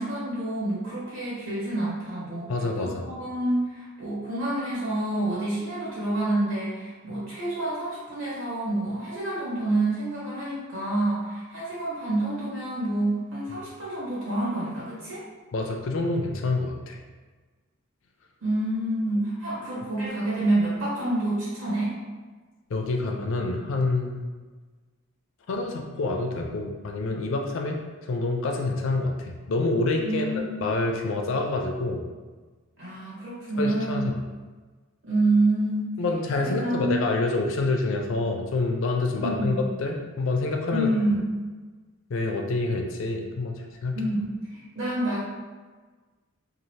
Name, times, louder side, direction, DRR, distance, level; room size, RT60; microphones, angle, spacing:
voice 1, 0.0-2.5 2.8-15.2 18.4-21.9 30.0-30.5 32.8-34.1 35.0-35.9 36.4-37.0 39.1-39.7 40.7-41.4 43.9-45.2, right 1 dB, 60° right, -8 dB, 1.5 m, -28 dB
voice 2, 2.5-3.1 15.5-17.0 22.7-24.2 25.5-30.3 30.6-32.0 33.6-34.1 36.0-40.9 42.1-44.0, left 2 dB, 60° left, 2 dB, 0.4 m, -27 dB
2.6 x 2.4 x 3.1 m, 1.3 s
head